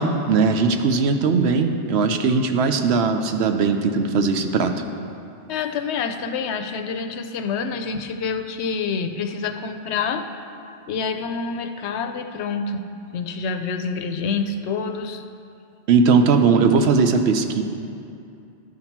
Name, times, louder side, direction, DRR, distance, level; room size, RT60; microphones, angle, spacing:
voice 1, 0.0-4.8 15.9-17.6, right 4 dB, 70° right, 6 dB, 0.9 m, -19 dB
voice 2, 5.5-10.3 10.9-12.9 13.1-15.2, left 5 dB, 75° left, 7 dB, 0.8 m, -27 dB
12.0 x 5.7 x 4.5 m, 2.5 s
omnidirectional pair, 1.2 m